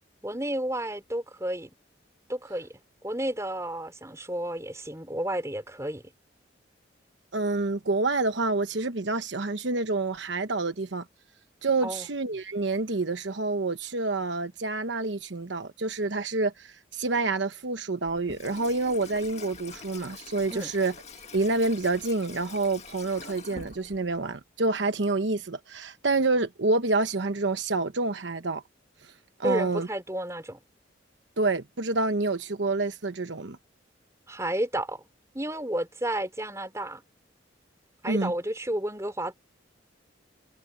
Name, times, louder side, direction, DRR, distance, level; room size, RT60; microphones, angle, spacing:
voice 1, 0.2-1.7 2.3-2.7 3.0-6.0 11.8-12.1 20.5-20.7 29.4-30.6 34.3-35.0 35.3-37.0 38.0-39.4, right 1 dB, 15° right, 4.5 m, -31 dB
voice 2, 7.3-11.0 11.6-20.9 21.3-28.6 29.4-29.9 31.4-33.6 38.1-38.3, right 3 dB, 75° right, 1.0 m, -28 dB
Water tap faucet / Sink (filling or washing), 18.0-24.3, left 4 dB, 35° left, 1.9 m, -45 dB
head